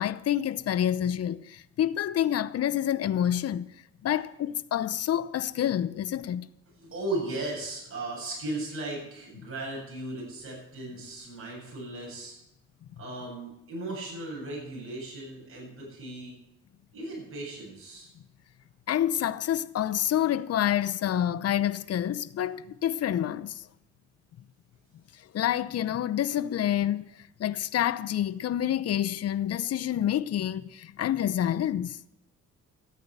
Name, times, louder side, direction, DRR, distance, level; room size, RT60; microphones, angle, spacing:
voice 1, 0.0-3.7 4.0-6.5 18.9-23.7 25.3-27.1 27.4-32.0, left 11 dB, 55° left, 0.7 m, -28 dB
voice 2, 6.8-12.3 13.0-16.3 16.9-18.1, right 2 dB, 45° right, 7.4 m, -36 dB
13.5 x 9.4 x 8.1 m
cardioid pair, 90°, 30 cm